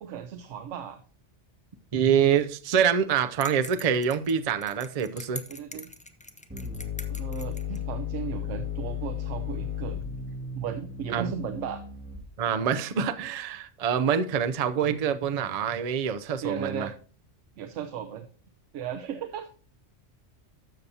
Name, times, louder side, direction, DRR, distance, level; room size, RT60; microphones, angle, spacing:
voice 1, 0.0-1.0 5.5-5.9 7.1-10.0 10.5-11.8 16.4-16.9 17.6-18.3 18.7-19.5, right 8 dB, 85° right, 1.0 m, -35 dB
voice 2, 1.9-5.4 11.1-11.3 12.4-16.9, right 8 dB, 45° right, 0.5 m, -25 dB
sound 1, 3.4-7.8, left 1 dB, 10° left, 0.3 m, -43 dB
sound 2, 6.5-12.5, left 8 dB, 10° right, 2.1 m, -34 dB
12.5 x 6.8 x 2.8 m
omnidirectional pair, 1.2 m